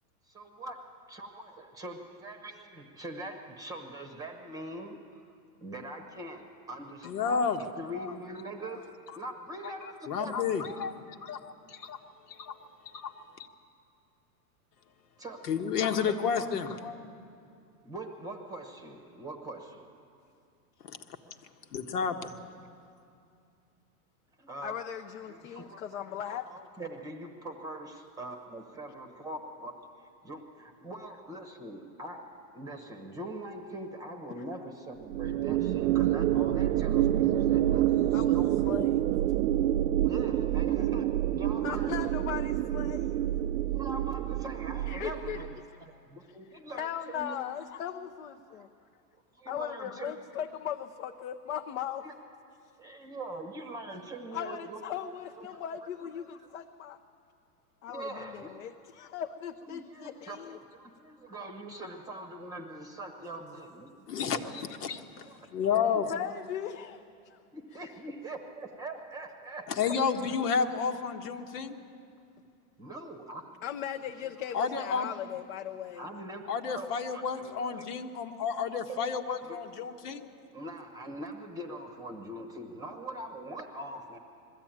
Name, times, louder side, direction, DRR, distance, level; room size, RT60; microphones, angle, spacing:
voice 1, 0.3-0.8 1.1-5.3 5.6-7.3 7.8-8.9 9.1-10.4 10.7-10.8 15.2-16.1 17.8-19.9 24.4-24.7 25.3-38.7 40.0-42.3 43.7-45.5 45.8-47.3 48.4-48.7 49.1-50.1 52.0-52.1 52.8-54.8 55.4-55.6 56.2-56.5 57.9-58.7 59.7-64.0 64.2-65.0 65.3-65.8 67.5-70.0 72.8-73.6 75.4-75.5 76.0-76.4 76.7-76.9 77.1-77.9 78.9-79.2 79.4-79.6 80.5-84.2, right 1 dB, 10° right, 6 dB, 0.9 m, -43 dB
voice 2, 7.0-8.1 9.6-12.0 12.3-12.5 12.9-13.1 15.5-16.9 20.8-21.0 21.7-22.3 64.1-65.3 65.5-66.1 69.7-71.8 74.5-75.1 76.5-80.2, left 6 dB, 85° left, 5 dB, 1.6 m, -31 dB
voice 3, 24.6-26.5 38.1-39.1 41.6-43.2 44.9-45.4 46.7-48.7 49.5-52.1 54.3-57.0 57.8-60.6 65.9-67.4 67.8-67.9 73.6-76.0, left 9 dB, 60° left, 5 dB, 0.8 m, -38 dB
sound 1, 35.1-45.5, right 13 dB, 75° right, 0.5 m, -27 dB
21.0 x 14.5 x 8.9 m, 2.5 s
supercardioid pair, 160°, 46 cm